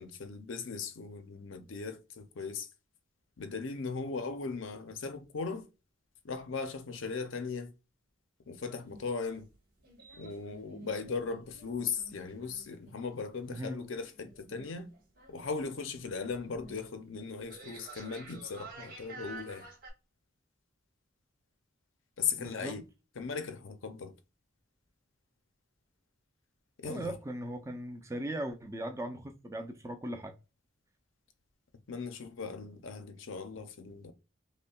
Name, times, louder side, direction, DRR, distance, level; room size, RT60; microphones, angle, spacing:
voice 1, 0.0-2.7 3.4-5.7 6.2-7.7 8.5-9.5 10.2-14.9 15.3-19.6 22.2-22.8 23.2-24.1 26.8-27.2 31.9-34.1, left 5 dB, 75° left, 0.6 m, -38 dB
sound 1, 8.6-19.9, right 2 dB, 45° right, 1.6 m, -52 dB
voice 2, 13.5-13.9 22.4-22.8 26.8-30.3, right 1 dB, 15° right, 0.5 m, -39 dB
5.3 x 2.2 x 2.3 m
head